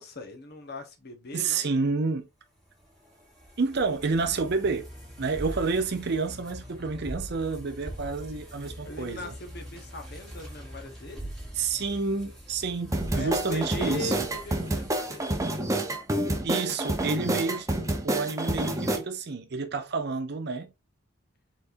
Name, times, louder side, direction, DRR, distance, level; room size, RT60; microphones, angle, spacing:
voice 1, 0.0-1.6 8.8-11.3 13.1-15.4, left 2 dB, 50° left, 1.1 m, -39 dB
voice 2, 1.3-2.3 3.6-4.9 5.2-9.3 11.6-14.3 16.4-17.7 18.0-20.7, right 4 dB, 50° right, 0.6 m, -29 dB
sound 1, 2.6-16.0, right 1 dB, ahead, 1.7 m, -43 dB
sound 2, 12.9-19.0, right 1 dB, 15° right, 0.7 m, -28 dB
4.3 x 4.0 x 2.6 m
head